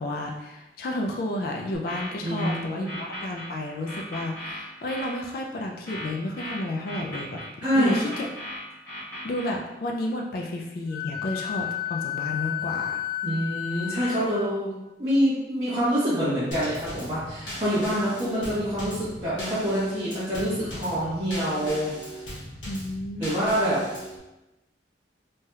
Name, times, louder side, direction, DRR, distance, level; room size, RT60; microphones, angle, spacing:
voice 1, 0.0-2.9 3.2-7.4 7.7-8.3 9.2-13.0 22.7-23.4, left 1 dB, 55° left, 1 dB, 0.3 m, -31 dB
sound 1, 1.9-3.5 3.9-5.1 5.9-7.5 7.9-9.5, left 1 dB, 10° left, 1.1 m, -37 dB
voice 2, 2.2-2.9 7.6-8.0 13.2-14.7 15.0-22.2 23.2-23.8, equal, 25° right, -13 dB, 0.9 m, -26 dB
Wind instrument woodwind instrument, 10.9-14.4, left 12 dB, 65° right, 0.5 m, -32 dB
Drum kit / Snare drum / Bass drum, 16.5-24.2, equal, 85° left, 1.1 m, -39 dB
3.3 x 2.7 x 2.3 m, 0.99 s
head